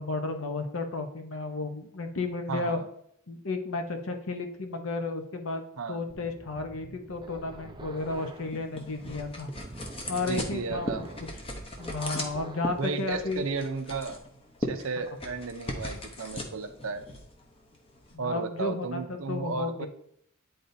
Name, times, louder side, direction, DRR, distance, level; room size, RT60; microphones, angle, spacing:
voice 1, 0.0-2.8 3.3-9.5 10.1-11.1 11.8-13.4 18.1-19.9, left 3 dB, 65° left, 6 dB, 0.9 m, -33 dB
voice 2, 2.5-2.9 5.8-6.0 10.2-11.0 12.8-14.2 14.6-17.0 18.2-19.9, right 4 dB, 65° right, 8 dB, 0.6 m, -34 dB
sound 1, 6.1-12.8, right 2 dB, 20° right, 0.3 m, -46 dB
sound 2, 8.0-18.2, left 1 dB, 25° left, 0.8 m, -39 dB
9.9 x 4.0 x 2.7 m, 0.72 s
head